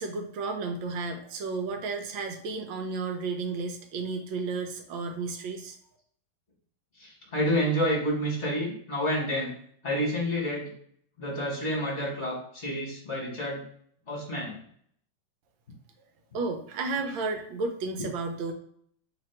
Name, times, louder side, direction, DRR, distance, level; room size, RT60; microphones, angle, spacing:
voice 1, 0.0-5.8 16.3-18.5, right 3 dB, 80° right, 5 dB, 1.4 m, -32 dB
voice 2, 7.0-9.5 9.8-10.7 11.2-13.6 14.1-14.6, equal, 40° left, -3 dB, 1.5 m, -29 dB
3.3 x 3.0 x 4.3 m, 0.63 s
omnidirectional pair, 2.1 m